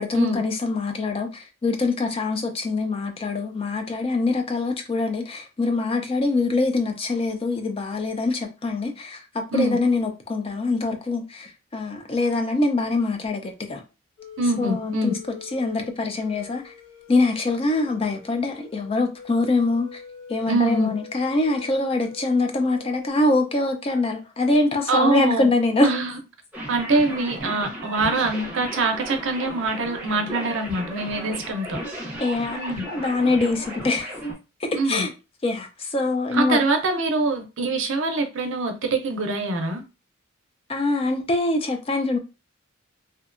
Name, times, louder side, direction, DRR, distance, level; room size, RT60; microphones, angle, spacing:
voice 1, 0.0-13.8 14.6-15.2 15.5-16.7 17.1-20.0 20.3-26.0 32.2-34.1 34.6-35.1 35.4-36.6 40.7-42.2, left 2 dB, 30° left, 0.4 m, -24 dB
sound 1, 14.2-22.3 22.7-23.1, left 5 dB, 45° left, 0.7 m, -44 dB
voice 2, 14.4-15.1 20.5-20.9 24.9-25.5 25.8-26.1 26.7-31.8 32.6-32.8 34.7-35.1 36.3-39.8, right 2 dB, 65° right, 0.5 m, -24 dB
sound 2, 26.5-34.3, right 1 dB, 5° right, 0.7 m, -35 dB
2.6 x 2.2 x 2.4 m
head